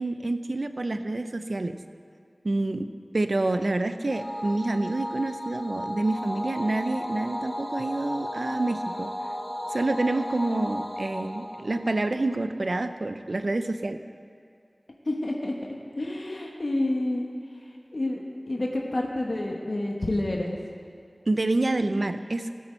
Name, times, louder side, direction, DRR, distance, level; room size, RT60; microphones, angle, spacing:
voice 1, 0.0-1.8 2.4-2.9 3.1-9.1 9.7-14.0 21.3-22.5, right 2 dB, 65° right, 9 dB, 0.5 m, -27 dB
sound 1, 4.1-12.7, equal, 20° left, 1.5 m, -35 dB
voice 2, 15.0-15.5 15.9-17.3 17.9-18.2 18.5-20.6, left 1 dB, 65° left, 0 dB, 1.1 m, -28 dB
15.5 x 8.5 x 4.5 m, 2.3 s
wide cardioid pair, 55°, 0 cm